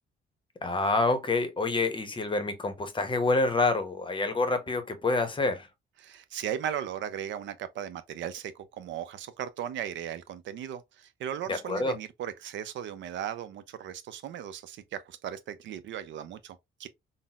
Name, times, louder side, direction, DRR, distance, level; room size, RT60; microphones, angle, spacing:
voice 1, 0.6-5.7 11.5-11.9, left 3 dB, 25° left, 0.7 m, -27 dB
voice 2, 6.0-16.9, right 9 dB, 70° right, 0.5 m, -37 dB
3.9 x 2.0 x 2.2 m
cardioid pair, 90°, 20 cm